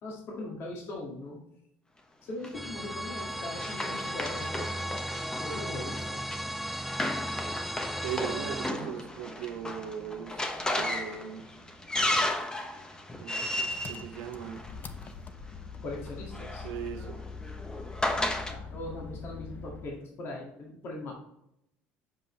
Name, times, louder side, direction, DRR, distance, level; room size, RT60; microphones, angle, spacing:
voice 1, 0.0-1.4 2.2-4.8 5.4-6.2 15.8-16.7 18.5-21.1, left 2 dB, 55° left, -2 dB, 2.1 m, -40 dB
Run, 2.4-15.1 16.1-18.5, left 1 dB, 15° left, 1.0 m, -34 dB
sound 1, 2.5-8.7, right 1 dB, ahead, 0.4 m, -36 dB
voice 2, 8.0-11.5 13.2-14.7 16.6-17.2, right 9 dB, 75° right, 6 dB, 0.9 m, -39 dB
Engine, 13.7-20.0, left 5 dB, 35° left, 0.7 m, -43 dB
7.4 x 5.3 x 3.3 m, 0.78 s
supercardioid pair, 85°, 5 cm